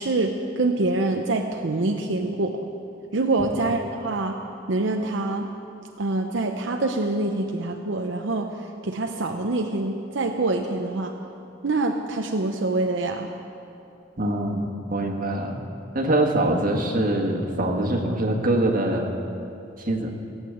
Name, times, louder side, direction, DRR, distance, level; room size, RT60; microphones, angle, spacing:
voice 1, 0.0-2.6 3.1-4.4 4.7-5.5 6.0-8.5 8.8-11.1 11.6-13.3, right 2 dB, 75° right, 3 dB, 0.7 m, -25 dB
voice 2, 14.2-15.6 15.9-19.1 19.8-20.1, right 1 dB, 45° right, 1 dB, 1.6 m, -24 dB
16.5 x 9.0 x 7.9 m, 2.7 s
head